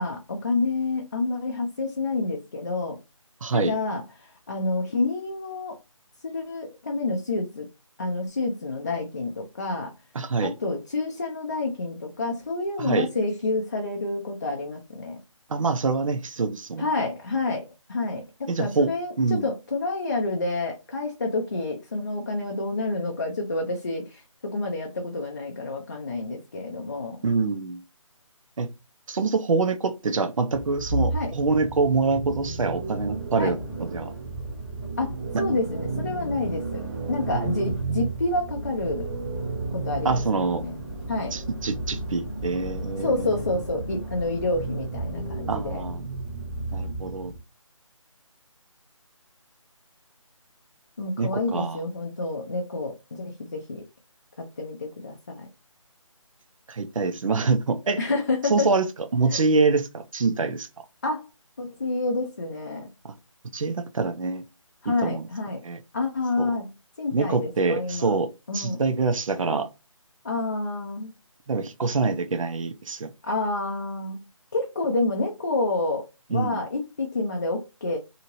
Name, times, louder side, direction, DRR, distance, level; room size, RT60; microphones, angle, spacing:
voice 1, 0.0-3.0 3.5-5.8 6.2-7.7 8.0-9.9 10.4-15.2 16.8-27.2 31.1-31.3 33.4-33.6 35.0-36.8 37.1-39.1 39.7-40.2 40.5-40.8 41.1-41.4 43.0-45.8 51.0-53.8 54.4-55.5 58.0-58.7 59.3-59.4 61.0-61.3 61.6-62.9 64.8-65.6 65.9-68.1 68.5-68.8 70.2-71.1 73.2-74.3 74.5-78.0, left 2 dB, 35° left, 0.4 m, -29 dB
voice 2, 3.4-3.7 10.1-10.5 12.8-13.1 15.5-16.9 18.5-18.9 19.2-19.5 27.2-27.8 28.6-28.7 29.1-34.1 35.3-35.4 37.1-37.7 40.0-40.6 41.3-43.1 45.5-46.0 46.7-47.3 51.2-51.8 56.7-58.0 58.5-58.8 59.1-60.7 63.0-63.1 63.5-64.4 64.9-65.3 65.6-65.8 66.4-66.5 67.1-68.3 68.5-69.7 71.5-73.1 76.3-76.6, right 4 dB, 75° right, 0.6 m, -25 dB
sound 1, 30.5-47.4, right 3 dB, 15° right, 0.6 m, -32 dB
2.8 x 2.6 x 2.9 m
figure-of-eight pair, 165°, 17 cm